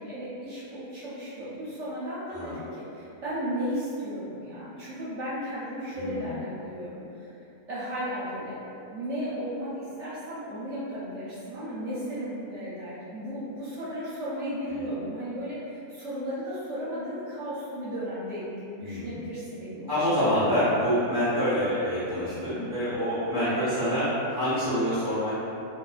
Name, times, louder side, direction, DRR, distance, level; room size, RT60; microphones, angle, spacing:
voice 1, 0.0-7.3 7.7-8.6 8.9-21.2 23.4-23.7, equal, 60° right, -10 dB, 0.8 m, -35 dB
voice 2, 5.9-6.4 14.7-14.8 18.8-19.1 19.9-25.4, equal, 55° left, -14 dB, 0.6 m, -26 dB
2.5 x 2.4 x 2.3 m, 2.7 s
omnidirectional pair, 1.6 m